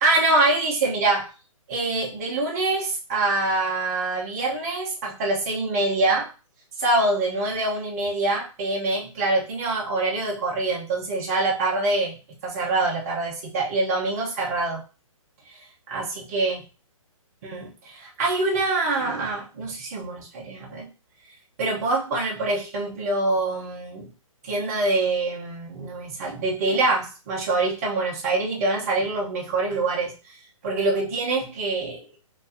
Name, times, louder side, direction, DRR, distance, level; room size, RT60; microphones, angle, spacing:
voice 1, 0.0-1.3 1.7-6.3 6.8-14.8 15.9-16.6 17.4-20.9 21.6-24.1 24.4-30.4 30.6-32.2, right 2 dB, 30° right, -3 dB, 1.0 m, -25 dB
4.5 x 2.8 x 2.7 m, 0.33 s
hypercardioid pair, 170°, 18 cm